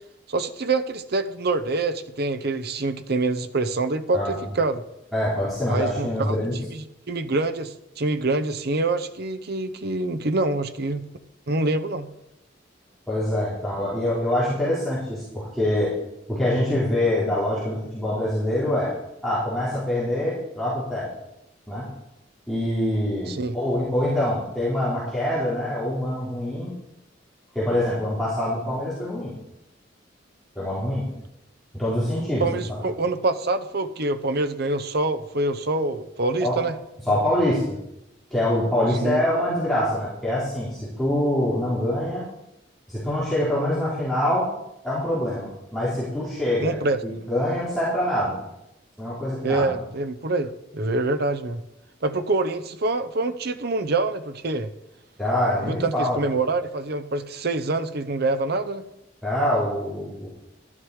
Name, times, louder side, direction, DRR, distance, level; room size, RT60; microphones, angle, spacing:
voice 1, 0.3-4.8 5.7-6.4 6.7-11.0 11.5-12.1 23.3-23.6 32.4-36.7 38.9-39.2 46.6-47.0 49.4-51.6 52.0-54.7 55.6-58.8, right 2 dB, 60° right, 10 dB, 0.9 m, -25 dB
voice 2, 4.1-4.4 5.1-6.6 13.1-15.9 16.3-18.9 19.2-21.1 21.7-21.9 22.5-26.7 27.5-29.3 30.6-31.1 31.7-32.6 36.4-36.6 37.1-37.8 38.3-42.3 42.9-44.5 44.8-48.5 49.0-49.8 55.2-56.2 59.2-60.3, left 1 dB, ahead, -10 dB, 3.8 m, -25 dB
13.0 x 11.0 x 4.9 m, 0.88 s
head